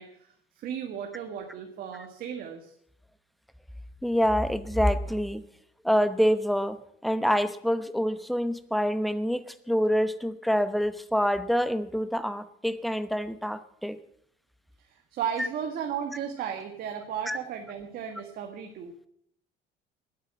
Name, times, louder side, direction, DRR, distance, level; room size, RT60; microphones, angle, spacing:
voice 1, 0.0-2.7 14.8-18.9, right 8 dB, 55° right, 4 dB, 1.8 m, -35 dB
voice 2, 4.0-5.4 5.8-6.8 7.0-14.0 15.4-15.5 17.3-17.4, equal, ahead, 12 dB, 0.9 m, -26 dB
19.5 x 8.5 x 7.6 m, 0.71 s
cardioid pair, 125°, 18 cm